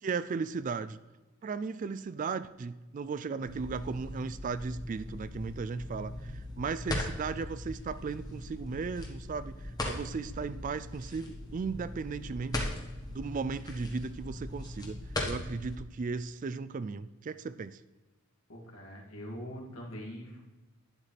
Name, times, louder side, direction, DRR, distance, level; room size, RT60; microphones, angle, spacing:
voice 1, 0.0-1.0 1.4-12.7 13.1-15.0 15.2-17.8, right 4 dB, 35° right, 15 dB, 0.3 m, -36 dB
sound 1, 3.5-15.8, left 1 dB, 20° left, 1.4 m, -39 dB
voice 2, 18.5-20.4, equal, 70° left, -2 dB, 2.5 m, -43 dB
11.5 x 9.8 x 3.3 m, 1.2 s
head